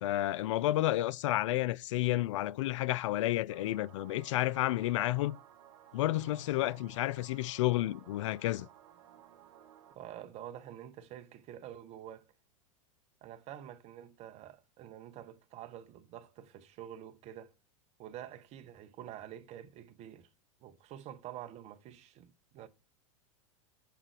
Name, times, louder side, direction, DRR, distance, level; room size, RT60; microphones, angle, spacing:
voice 1, 0.0-5.4 5.9-8.7, left 15 dB, 65° left, 0.4 m, -31 dB
sound 1, 3.5-10.0, right 10 dB, 65° right, 1.1 m, -57 dB
voice 2, 9.9-12.3 13.2-17.5 18.0-20.3 20.6-22.7, right 11 dB, 40° right, 0.9 m, -48 dB
6.8 x 3.7 x 4.7 m
hypercardioid pair, 95°, 17 cm